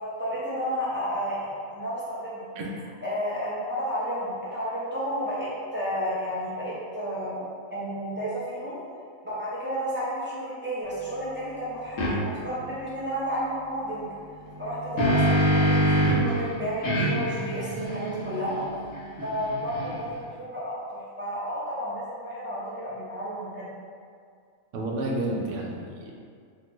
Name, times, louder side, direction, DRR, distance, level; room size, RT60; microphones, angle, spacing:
voice 1, 0.0-2.5 3.0-7.4 7.7-8.8 9.2-14.1 14.6-18.6 19.2-23.7, equal, 15° right, -11 dB, 0.4 m, -31 dB
sound 1, 12.0-12.1 14.5-16.3 16.8-20.2, right 1 dB, 80° left, 1.1 m, -25 dB
voice 2, 24.7-26.1, right 1 dB, 75° right, -2 dB, 0.9 m, -30 dB
3.1 x 2.1 x 3.0 m, 2.2 s
omnidirectional pair, 1.4 m